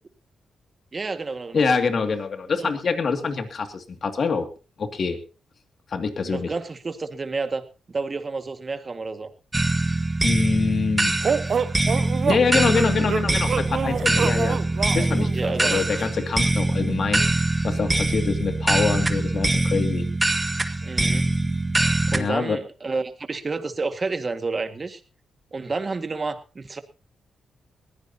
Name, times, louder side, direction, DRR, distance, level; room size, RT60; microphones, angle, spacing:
voice 1, 0.9-1.6 2.6-2.7 6.2-9.3 12.7-12.8 15.3-15.8 20.9-21.3 22.1-25.0 25.5-26.8, right 3 dB, 35° right, 8 dB, 1.9 m, -30 dB
voice 2, 1.5-4.5 4.8-5.2 5.9-6.5 10.2-11.1 12.3-14.6 14.9-20.1 22.1-22.6, left 5 dB, 55° left, 7 dB, 2.4 m, -25 dB
sound 1, 9.5-22.2, right 2 dB, 20° right, 1.5 m, -23 dB
sound 2, 11.2-16.1, right 6 dB, 55° right, 0.6 m, -27 dB
21.0 x 15.5 x 2.9 m, 0.32 s
cardioid pair, 85°, 0 cm